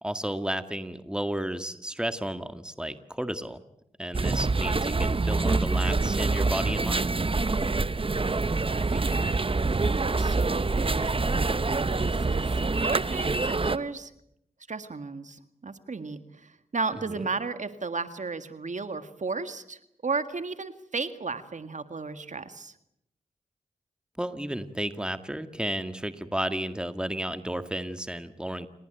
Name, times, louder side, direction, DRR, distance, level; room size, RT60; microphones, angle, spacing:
voice 1, 0.0-3.6 4.0-7.1 17.1-17.2 24.2-28.7, right 1 dB, 5° right, 10 dB, 1.9 m, -32 dB
sound 1, 4.1-13.8, right 3 dB, 40° right, 1.1 m, -26 dB
voice 2, 8.7-11.2 11.8-14.1 14.7-22.7, right 4 dB, 55° right, 10 dB, 2.0 m, -34 dB
29.0 x 18.5 x 9.1 m, 0.78 s
cardioid pair, 45°, 15 cm